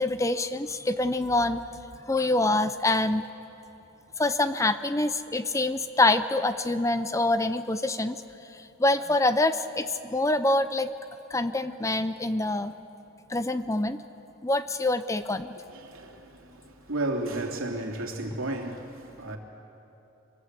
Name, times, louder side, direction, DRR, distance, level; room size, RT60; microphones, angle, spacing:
voice 1, 0.0-1.6 2.1-3.2 4.2-8.2 8.6-10.9 11.3-12.7 13.3-14.0 14.4-15.5, left 2 dB, 15° left, 11 dB, 0.5 m, -25 dB
voice 2, 15.7-19.4, right 2 dB, 75° right, 2 dB, 2.8 m, -33 dB
25.5 x 21.0 x 8.2 m, 2.9 s
head